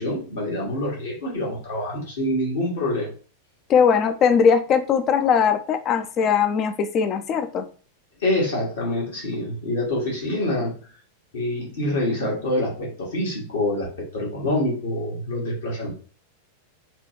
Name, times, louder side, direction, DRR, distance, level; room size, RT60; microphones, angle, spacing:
voice 1, 0.0-3.1 8.2-10.9 11.3-15.9, left 1 dB, 60° left, -3 dB, 1.6 m, -26 dB
voice 2, 3.7-7.7, left 6 dB, 30° left, 9 dB, 0.5 m, -20 dB
4.1 x 2.3 x 3.1 m, 0.39 s
figure-of-eight pair, 90°, 0 cm